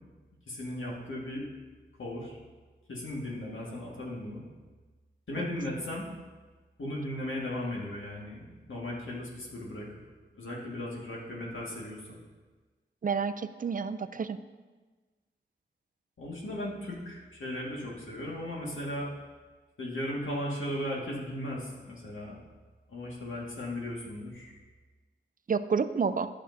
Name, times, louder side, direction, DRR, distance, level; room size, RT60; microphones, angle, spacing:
voice 1, 0.5-1.5 2.0-2.4 2.9-4.4 5.3-6.1 6.8-9.9 10.3-12.2 16.2-19.1 19.8-22.4 22.9-24.5, left 1 dB, 80° left, -4 dB, 1.8 m, -36 dB
voice 2, 13.0-14.4 25.5-26.3, right 5 dB, 45° right, 12 dB, 0.4 m, -29 dB
12.0 x 6.4 x 2.7 m, 1.3 s
wide cardioid pair, 65°, 20 cm